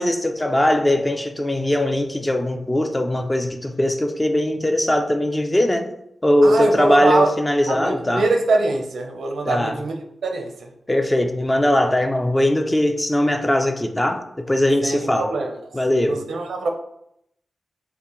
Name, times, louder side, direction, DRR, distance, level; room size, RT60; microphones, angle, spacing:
voice 1, 0.0-5.9 6.2-8.3 9.4-9.8 10.9-15.3 15.7-16.2, left 1 dB, 15° left, 0.4 m, -20 dB
voice 2, 6.4-7.3 7.7-9.9 10.2-10.7 14.8-15.6 16.0-16.7, right 3 dB, 90° right, 0.6 m, -23 dB
5.6 x 2.1 x 3.0 m
wide cardioid pair, 145°, 0 cm